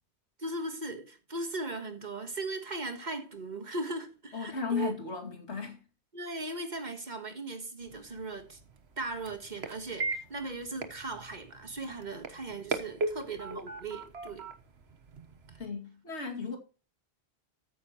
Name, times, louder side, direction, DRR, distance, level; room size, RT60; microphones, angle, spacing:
voice 1, 0.4-4.9 6.1-8.6 9.0-14.5 15.5-15.6, right 2 dB, 40° right, 1.6 m, -38 dB
voice 2, 4.3-5.8 15.6-16.6, left 5 dB, 75° left, 2.7 m, -35 dB
sound 1, 7.8-15.7, right 3 dB, 70° right, 1.5 m, -39 dB
13.5 x 9.4 x 3.0 m
omnidirectional pair, 1.1 m